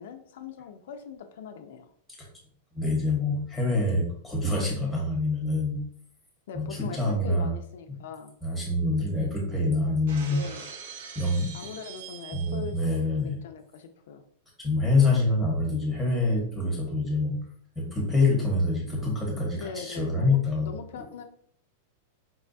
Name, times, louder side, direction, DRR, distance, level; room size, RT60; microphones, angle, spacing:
voice 1, 0.0-1.9 6.5-8.4 10.3-10.7 11.5-14.2 19.5-21.2, left 6 dB, 65° left, 6 dB, 0.3 m, -41 dB
voice 2, 2.7-5.8 6.5-7.5 8.4-10.4 11.1-11.5 12.3-13.4 14.6-17.3 17.7-20.7, left 2 dB, ahead, -3 dB, 1.0 m, -26 dB
Shatter, 10.1-12.8, right 6 dB, 85° right, 0.6 m, -43 dB
4.6 x 2.2 x 2.5 m, 0.62 s
supercardioid pair, 170°, 0 cm